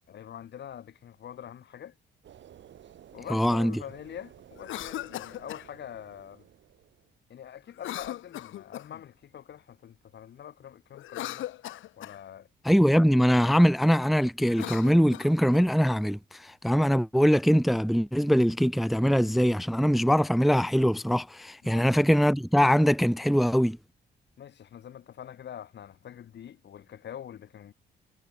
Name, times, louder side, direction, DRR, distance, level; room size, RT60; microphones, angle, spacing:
voice 1, 0.1-1.9 3.1-6.5 7.3-11.5 12.0-12.5 21.6-22.1 24.4-27.7, left 9 dB, 60° left, 2.5 m, -44 dB
sound 1, 2.2-7.1, right 10 dB, 65° right, 7.3 m, -53 dB
voice 2, 3.3-3.7 12.6-23.8, equal, ahead, 0.6 m, -22 dB
Cough, 4.5-5.7 7.8-9.0 10.9-12.2 14.4-15.7, left 14 dB, 80° left, 2.3 m, -38 dB
cardioid pair, 90°, 20 cm